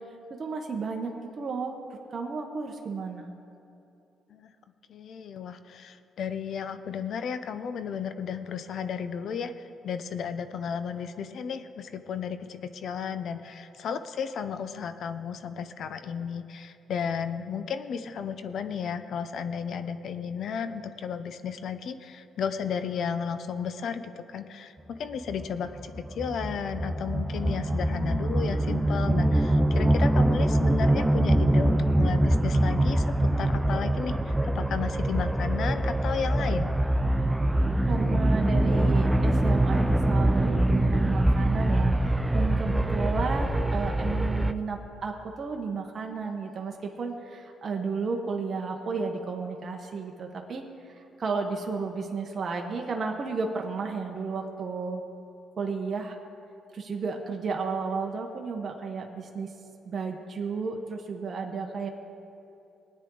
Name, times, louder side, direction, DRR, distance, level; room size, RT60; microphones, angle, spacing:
voice 1, 0.4-1.7 2.1-3.3 37.9-55.0 55.6-56.2 56.7-59.5 59.8-61.9, right 4 dB, 45° right, 2 dB, 1.1 m, -33 dB
voice 2, 4.9-36.7, left 7 dB, 65° left, 10 dB, 0.7 m, -34 dB
sound 1, 25.3-44.5, right 1 dB, 10° right, 0.5 m, -24 dB
19.0 x 9.5 x 3.9 m, 2.8 s
cardioid pair, 90°, 0 cm